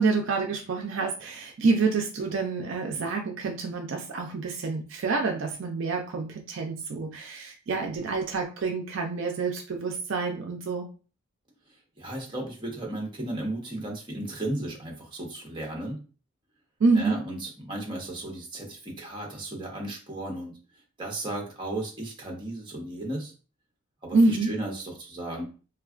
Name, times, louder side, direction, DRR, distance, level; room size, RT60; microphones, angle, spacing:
voice 1, 0.0-10.9 16.8-17.2 24.1-24.5, right 3 dB, 55° right, 2 dB, 0.4 m, -27 dB
voice 2, 11.7-16.0 16.9-20.5 21.0-23.3 24.0-25.4, right 1 dB, 20° right, 0 dB, 0.7 m, -35 dB
3.5 x 2.3 x 2.3 m, 0.37 s
head